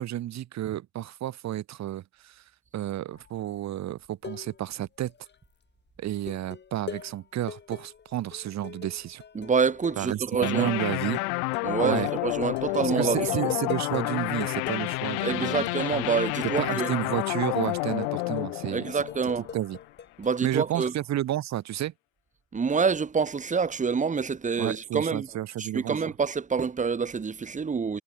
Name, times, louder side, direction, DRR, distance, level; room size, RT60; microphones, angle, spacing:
voice 1, 0.0-2.4 2.7-5.1 6.0-9.2 10.0-11.2 11.8-12.1 12.8-15.7 16.6-19.0 19.5-19.8 20.4-21.9 24.6-26.1, right 13 dB, 40° right, 5.0 m, -31 dB
sound 1, 3.1-3.4 3.8-4.7 5.0-5.4 6.1-14.1 14.4-16.6 16.8-20.4, left 7 dB, 25° left, 6.6 m, -43 dB
voice 2, 9.4-10.7 11.6-13.5 15.2-16.9 18.7-19.5 20.2-20.9 22.5-25.3 25.6-28.0, right 5 dB, 15° right, 3.3 m, -27 dB
sound 2, 10.4-19.8, left 40 dB or more, 60° left, 5.0 m, -30 dB
hypercardioid pair, 100°, 42 cm